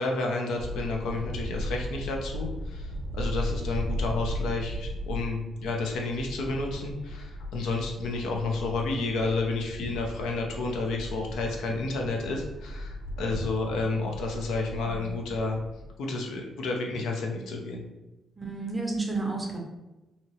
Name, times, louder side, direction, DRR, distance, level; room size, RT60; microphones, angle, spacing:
voice 1, 0.0-15.6 16.0-17.8, left 3 dB, 85° left, 1 dB, 0.6 m, -31 dB
sound 1, 0.6-15.9, equal, 85° right, 0.5 m, -37 dB
voice 2, 14.8-15.2 18.4-19.6, right 3 dB, 10° right, -1 dB, 0.5 m, -32 dB
2.8 x 2.8 x 2.9 m, 1.0 s
cardioid pair, 170°, 0 cm